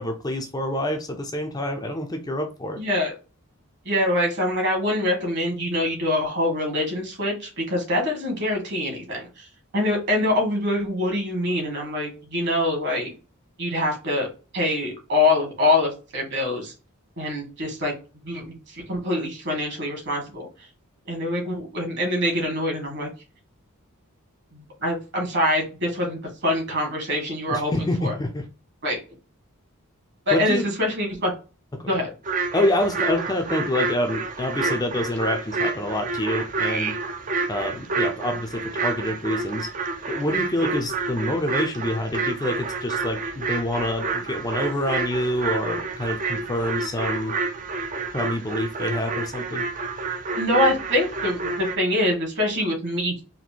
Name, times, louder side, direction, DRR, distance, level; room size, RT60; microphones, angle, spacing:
voice 1, 0.0-2.8 27.5-28.5 30.3-30.7 31.7-31.9 32.5-37.0 37.5-39.7 40.1-47.3 48.1-49.6, left 1 dB, 15° left, 4 dB, 0.5 m, -27 dB
voice 2, 2.8-3.1 3.8-9.5 9.7-13.1 13.6-14.3 14.5-16.7 17.2-17.9 18.2-20.5 21.1-23.1 24.5-28.1 28.8-29.0 30.2-31.3 31.9-32.1 50.3-53.1, left 1 dB, 50° right, 1 dB, 1.8 m, -24 dB
sound 1, 32.2-51.8, right 3 dB, 35° right, 0.5 m, -29 dB
4.2 x 2.6 x 2.8 m, 0.34 s
head